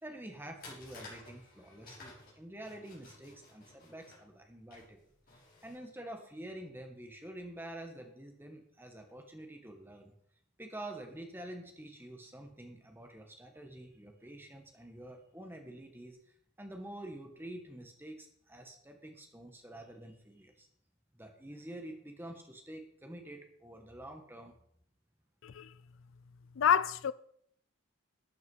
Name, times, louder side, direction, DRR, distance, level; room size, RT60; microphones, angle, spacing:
voice 1, 0.0-5.0 5.3-10.1 10.6-16.2 16.6-20.7 21.1-24.5, right 1 dB, 10° right, 1.8 m, -47 dB
sound 1, 0.6-5.8, left 2 dB, 40° left, 6.2 m, -54 dB
voice 2, 26.6-27.1, left 8 dB, 60° left, 0.4 m, -27 dB
13.0 x 8.8 x 5.7 m
head